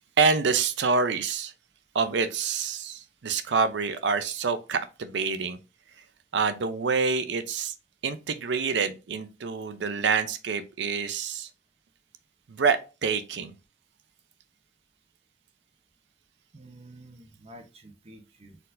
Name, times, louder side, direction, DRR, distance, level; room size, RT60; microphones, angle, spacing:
voice 1, 0.2-1.5 1.9-5.6 6.3-7.7 8.0-11.5 12.5-13.5, right 5 dB, 75° right, 0.5 m, -27 dB
voice 2, 16.5-18.6, right 1 dB, 35° right, 0.7 m, -49 dB
4.4 x 3.9 x 2.5 m
head